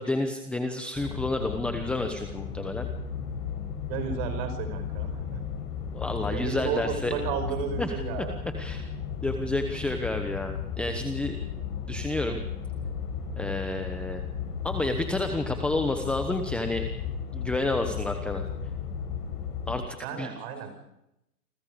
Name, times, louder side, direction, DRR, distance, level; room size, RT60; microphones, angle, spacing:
voice 1, 0.0-2.9 5.9-7.1 7.8-7.9 8.6-8.8 9.2-11.4 11.9-12.4 13.4-14.2 14.6-16.9 17.3-18.4 19.7-19.8 20.2-20.3, left 2 dB, ahead, 6 dB, 1.0 m, -30 dB
sound 1, 1.0-19.8, left 6 dB, 30° left, 5.2 m, -34 dB
voice 2, 3.9-5.4 6.3-8.4 20.0-20.7, right 7 dB, 35° right, 8 dB, 5.6 m, -33 dB
29.0 x 22.5 x 5.2 m, 0.87 s
hypercardioid pair, 145°, 46 cm